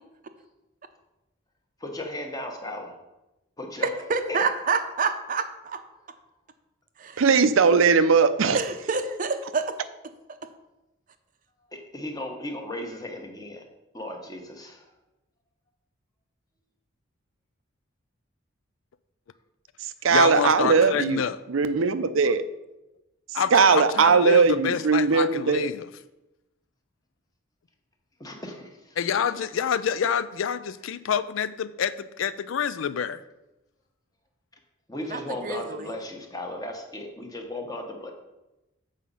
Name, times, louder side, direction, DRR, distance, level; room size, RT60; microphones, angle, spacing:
voice 1, 1.8-3.0 3.6-4.4 11.7-13.6 13.9-14.9 28.2-29.0 34.9-38.1, left 1 dB, 20° left, 1.0 m, -36 dB
voice 2, 3.8-5.8 7.0-7.2 8.5-9.8 35.1-35.9, right 4 dB, 40° right, 0.6 m, -28 dB
voice 3, 7.2-8.6 20.0-21.2 21.5-22.4 23.5-25.7, right 5 dB, 85° right, 0.5 m, -19 dB
voice 4, 20.1-21.4 23.3-25.9 29.0-31.9 32.2-33.2, left 7 dB, 80° left, 0.4 m, -27 dB
7.6 x 4.9 x 5.4 m
head